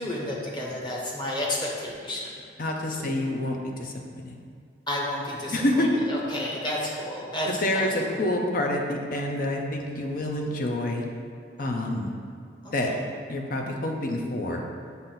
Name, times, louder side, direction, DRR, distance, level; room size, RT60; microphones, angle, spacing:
voice 1, 0.0-2.3 3.0-3.3 4.9-8.1 11.6-11.9 12.6-13.0, left 1 dB, 25° left, -3 dB, 1.0 m, -32 dB
voice 2, 2.6-4.4 5.5-5.9 7.5-11.0 11.6-12.1 12.7-12.9 13.3-14.6, left 1 dB, 50° left, 1 dB, 0.7 m, -27 dB
7.2 x 2.7 x 5.7 m, 2.1 s
head